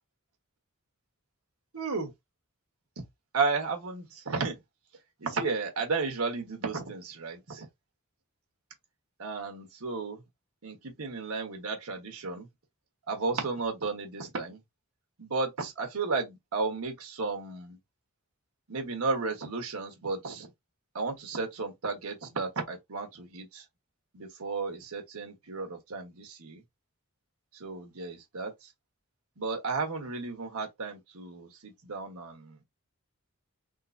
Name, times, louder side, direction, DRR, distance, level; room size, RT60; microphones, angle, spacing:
voice 1, 1.7-2.1 3.3-4.6 5.2-7.7 9.2-10.2 10.6-12.5 13.1-14.6 15.2-17.8 18.7-20.5 20.9-23.6 24.1-26.6 27.5-28.7 29.4-32.6, right 4 dB, 85° right, 1.1 m, -33 dB
3.8 x 2.4 x 2.5 m
head